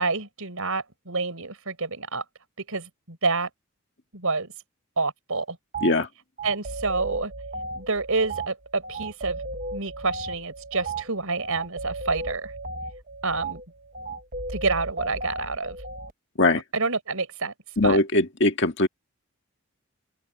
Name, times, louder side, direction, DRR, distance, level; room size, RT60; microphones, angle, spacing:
voice 1, 0.0-2.2 2.6-3.5 4.1-4.5 5.0-5.6 6.4-7.3 7.7-9.4 9.7-12.5 13.2-13.6 14.5-15.8 16.7-17.5 17.8-18.0, right 3 dB, 75° right, 4.6 m, -28 dB
sound 1, 5.7-5.9 6.4-16.1, right 2 dB, 40° right, 1.2 m, -35 dB
voice 2, 17.8-18.9, left 2 dB, 55° left, 1.9 m, -21 dB
open air
head